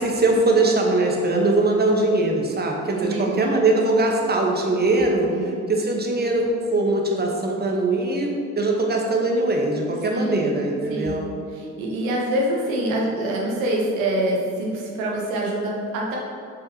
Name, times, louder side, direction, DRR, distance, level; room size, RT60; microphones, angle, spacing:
voice 1, 0.0-8.3 8.6-11.3, right 2 dB, 25° right, 0 dB, 1.1 m, -21 dB
voice 2, 3.0-3.4 5.3-5.6 10.1-10.5 10.9-11.2 11.5-16.2, right 1 dB, 75° right, -2 dB, 1.0 m, -25 dB
6.8 x 5.1 x 2.9 m, 2.5 s
figure-of-eight pair, 40°, 41 cm